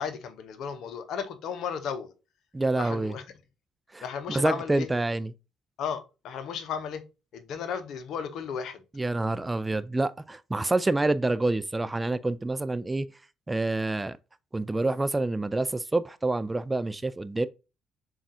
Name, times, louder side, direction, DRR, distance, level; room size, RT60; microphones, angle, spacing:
voice 1, 0.0-2.1 2.7-3.2 4.0-4.9 5.8-7.0 7.3-8.8, left 7 dB, 60° left, 0.7 m, -34 dB
voice 2, 2.5-3.1 3.9-5.3 9.0-13.1 13.5-14.2 14.5-17.5, right 2 dB, 20° right, 0.3 m, -27 dB
7.0 x 2.4 x 2.6 m
hypercardioid pair, 45°, 0 cm